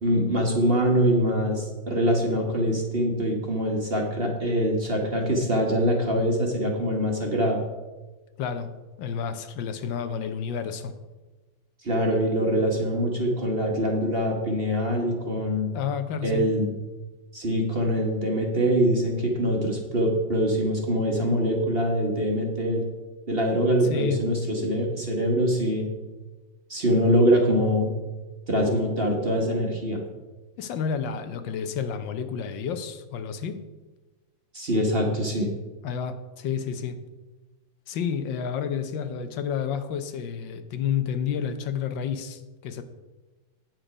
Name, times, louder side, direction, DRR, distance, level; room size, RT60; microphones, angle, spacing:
voice 1, 0.0-7.6 11.8-15.7 16.2-16.7 17.3-22.8 23.3-25.8 26.7-27.9 28.5-30.0 34.5-35.5, equal, 35° right, 0 dB, 1.3 m, -24 dB
voice 2, 8.4-8.7 9.0-10.9 15.7-16.5 23.8-24.2 30.6-33.6 35.8-37.0 37.9-42.8, left 7 dB, 75° left, 9 dB, 1.4 m, -30 dB
8.9 x 7.6 x 5.0 m, 1.2 s
omnidirectional pair, 2.1 m